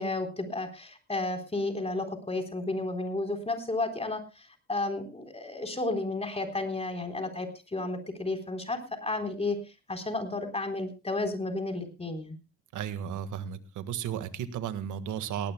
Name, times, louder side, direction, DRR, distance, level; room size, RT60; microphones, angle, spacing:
voice 1, 0.0-9.6 9.9-12.4, left 2 dB, 20° left, 5 dB, 3.9 m, -32 dB
voice 2, 12.7-15.5, right 9 dB, 85° right, 11 dB, 1.7 m, -34 dB
18.5 x 18.0 x 2.2 m, 0.29 s
cardioid pair, 90°, 30 cm